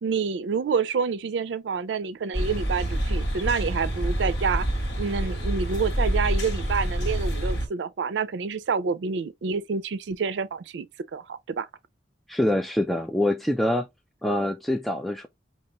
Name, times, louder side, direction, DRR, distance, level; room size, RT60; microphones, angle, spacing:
voice 1, 0.0-4.7 5.0-10.9 11.1-11.7, right 5 dB, 85° right, 0.4 m, -28 dB
sound 1, 2.3-7.7, right 1 dB, 75° left, 1.7 m, -27 dB
voice 2, 12.3-13.9 14.2-15.3, left 1 dB, ahead, 0.3 m, -25 dB
5.6 x 2.8 x 2.8 m
head